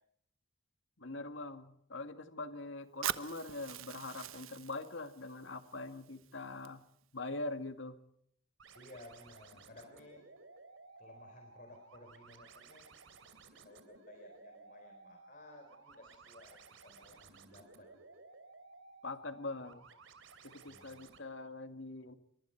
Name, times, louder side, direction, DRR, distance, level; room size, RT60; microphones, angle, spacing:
voice 1, 1.0-6.8 7.1-8.0 19.0-19.9 20.4-22.1, left 2 dB, 65° left, 9 dB, 2.1 m, -43 dB
Fire, 3.0-7.0, right 10 dB, 90° right, 1.1 m, -43 dB
sound 1, 8.6-21.2, right 4 dB, 70° right, 3.1 m, -57 dB
voice 2, 8.7-10.2 11.0-12.9 13.5-17.9 20.7-21.1, left 1 dB, 40° left, 4 dB, 4.3 m, -57 dB
27.0 x 24.0 x 4.6 m, 0.68 s
head